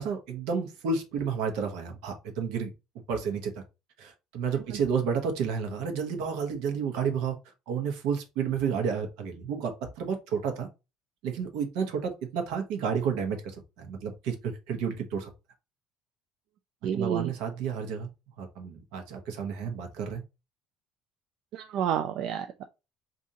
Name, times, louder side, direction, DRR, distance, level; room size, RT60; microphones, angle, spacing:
voice 1, 0.0-2.7 3.1-3.5 4.0-7.4 7.7-10.7 11.2-15.3 16.9-18.1 18.4-20.2, right 6 dB, 80° right, 1.0 m, -31 dB
voice 2, 16.8-17.3 21.5-22.6, right 9 dB, 65° right, 0.4 m, -30 dB
4.8 x 2.6 x 2.7 m
cardioid pair, 130°, 0 cm